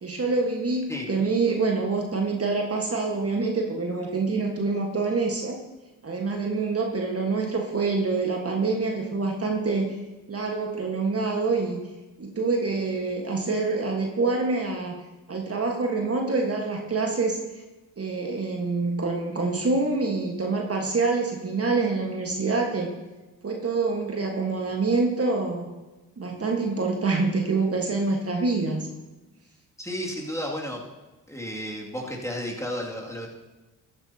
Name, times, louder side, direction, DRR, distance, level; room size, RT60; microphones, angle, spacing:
voice 1, 0.0-5.6 6.0-9.9 10.3-11.8 12.2-15.0 15.3-17.4 18.0-22.9 23.4-25.7 26.2-28.9, right 3 dB, 35° right, 1 dB, 1.5 m, -26 dB
voice 2, 29.8-30.8 31.3-33.3, equal, 5° left, -2 dB, 2.4 m, -32 dB
13.5 x 9.5 x 2.9 m, 1.1 s
hypercardioid pair, 50°, 39 cm